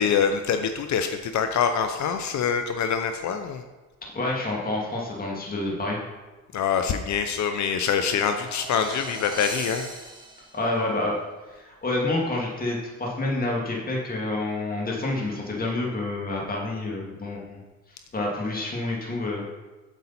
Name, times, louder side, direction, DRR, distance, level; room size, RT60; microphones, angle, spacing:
voice 1, 0.0-3.6 6.5-9.9, left 7 dB, 65° left, 7 dB, 0.7 m, -25 dB
voice 2, 4.0-6.0 10.5-11.1 11.6-17.6 18.1-19.4, left 2 dB, 30° left, -3 dB, 2.3 m, -28 dB
sound 1, 8.1-10.8, right 2 dB, 15° right, 1.6 m, -39 dB
8.2 x 8.1 x 4.3 m, 1.2 s
cardioid pair, 90°, 30 cm